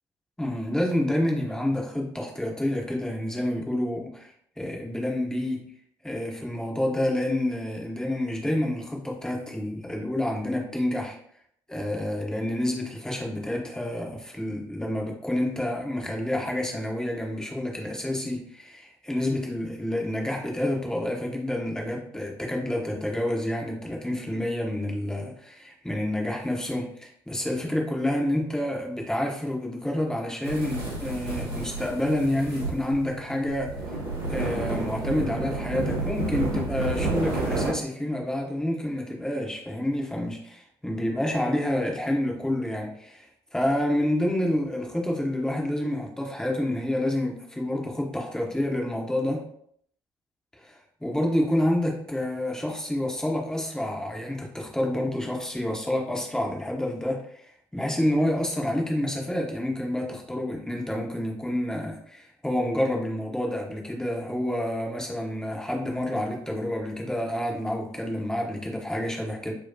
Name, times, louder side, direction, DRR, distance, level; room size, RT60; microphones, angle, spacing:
voice 1, 0.4-4.3 4.6-5.7 6.0-11.2 11.7-34.0 34.3-43.3 43.5-49.5 50.6-69.5, left 1 dB, 5° left, -1 dB, 0.9 m, -28 dB
sound 1, 30.4-37.7, right 2 dB, 80° right, 1.2 m, -30 dB
4.4 x 2.2 x 2.7 m, 0.67 s
figure-of-eight pair, 50°, 12 cm